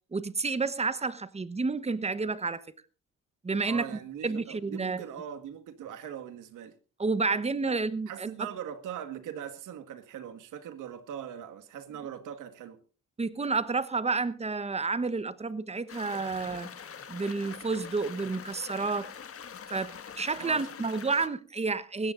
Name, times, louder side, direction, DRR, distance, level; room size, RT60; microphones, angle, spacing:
voice 1, 0.1-2.6 3.4-3.9 4.2-5.0 7.0-8.3 13.2-16.7 17.1-19.1 19.7-22.1, right 4 dB, 20° right, 1.1 m, -30 dB
voice 2, 3.6-6.7 7.7-7.8 8.1-12.8 20.4-20.6, right 9 dB, 85° right, 1.8 m, -41 dB
sound 1, 15.9-21.3, left 7 dB, 50° left, 1.9 m, -44 dB
21.0 x 16.0 x 2.6 m
cardioid pair, 90°, 30 cm